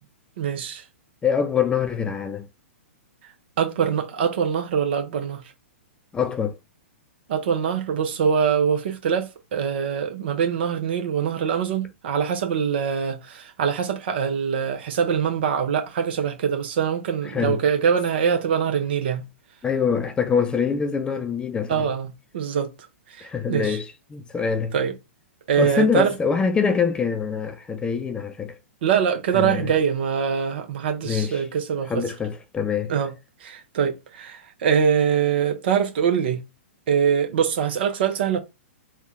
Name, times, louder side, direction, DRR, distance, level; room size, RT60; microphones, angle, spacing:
voice 1, 0.4-0.8 3.6-5.4 7.3-19.2 21.7-22.7 23.1-23.8 24.7-24.9 25.5-26.1 28.8-32.0 32.9-33.1 33.4-36.4 36.9-38.4, right 7 dB, 50° right, 1.0 m, -23 dB
voice 2, 1.2-2.5 6.1-6.6 17.3-17.6 19.6-21.9 23.2-24.7 25.6-28.6 29.3-29.7 31.0-31.4 31.9-32.9, left 6 dB, 15° left, 0.4 m, -24 dB
3.5 x 2.4 x 4.2 m
figure-of-eight pair, 110°, 7 cm